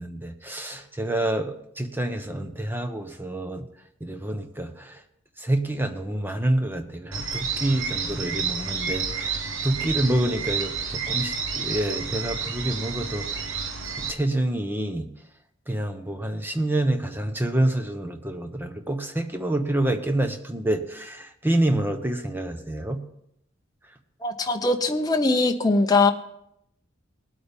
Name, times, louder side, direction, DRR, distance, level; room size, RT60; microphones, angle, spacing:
voice 1, 0.0-3.6 4.0-5.0 5.4-13.4 14.0-15.1 15.7-23.0, right 1 dB, 10° right, 6 dB, 0.9 m, -27 dB
sound 1, 7.1-14.1, right 5 dB, 75° right, 1.1 m, -30 dB
voice 2, 24.2-26.1, left 3 dB, 20° left, 4 dB, 0.8 m, -21 dB
19.5 x 8.5 x 3.6 m, 0.77 s
head